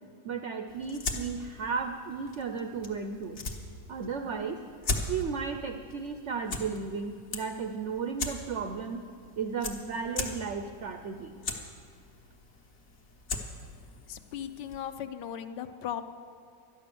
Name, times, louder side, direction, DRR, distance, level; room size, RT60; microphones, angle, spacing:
voice 1, 0.2-3.4 3.9-4.6 5.1-9.0 9.4-11.4, right 5 dB, 70° right, 6 dB, 0.6 m, -34 dB
sound 1, 0.7-15.0, left 3 dB, 45° left, 1.3 m, -40 dB
voice 2, 14.1-16.0, left 10 dB, 75° left, 9 dB, 1.3 m, -37 dB
12.5 x 10.0 x 6.9 m, 2.3 s
omnidirectional pair, 2.0 m